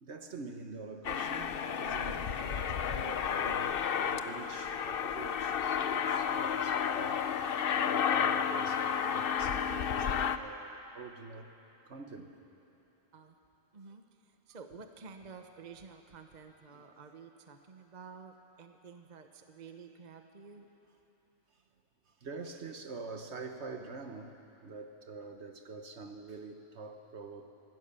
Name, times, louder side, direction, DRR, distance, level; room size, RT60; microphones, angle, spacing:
voice 1, 0.0-11.5 11.9-12.3 16.7-16.8 20.6-20.7 22.2-24.3 24.6-27.5, right 4 dB, 55° right, 6 dB, 1.3 m, -46 dB
Aircraft, 1.0-10.4, left 7 dB, 55° left, 0.7 m, -32 dB
voice 2, 14.5-20.6, right 5 dB, 35° right, 6 dB, 1.0 m, -51 dB
25.0 x 17.0 x 6.8 m, 3.0 s
omnidirectional pair, 1.4 m